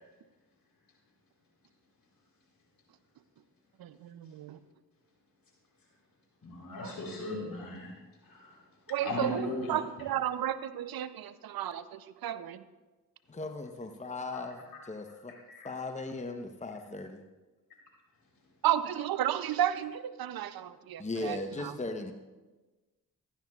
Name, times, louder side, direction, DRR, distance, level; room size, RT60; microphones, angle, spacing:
voice 1, 3.8-4.6 6.8-6.9 8.9-12.6 18.6-21.7, right 11 dB, 75° right, 14 dB, 0.6 m, -33 dB
voice 2, 6.4-7.9 8.2-8.5 9.0-9.8 15.5-15.7, left 1 dB, 70° left, -2 dB, 3.8 m, -37 dB
voice 3, 13.3-15.4 15.6-17.2 21.0-22.1, left 2 dB, 20° left, 6 dB, 0.9 m, -38 dB
15.5 x 11.5 x 2.4 m, 1.2 s
supercardioid pair, 45°, 36 cm